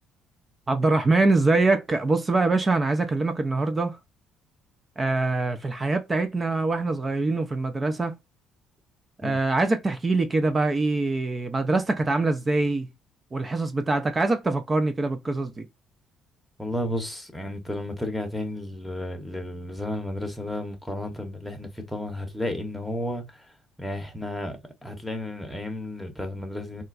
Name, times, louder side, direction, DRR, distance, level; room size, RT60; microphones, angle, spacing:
voice 1, 0.7-4.0 5.0-8.1 9.2-12.9 13.3-15.7, right 3 dB, 25° right, 0.4 m, -24 dB
voice 2, 16.6-23.5 23.8-26.8, left 1 dB, 5° left, 1.0 m, -33 dB
3.8 x 2.3 x 2.4 m
cardioid pair, 90°, 0 cm